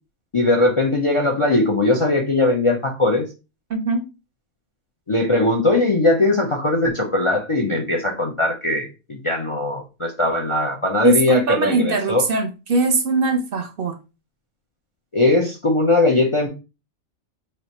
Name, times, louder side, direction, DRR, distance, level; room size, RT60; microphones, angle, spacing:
voice 1, 0.3-3.3 5.1-12.2 15.1-16.5, left 2 dB, 40° left, 1 dB, 0.4 m, -19 dB
voice 2, 3.7-4.0 11.0-13.9, right 3 dB, 60° right, 7 dB, 0.7 m, -21 dB
3.1 x 2.5 x 4.1 m, 0.29 s
omnidirectional pair, 1.2 m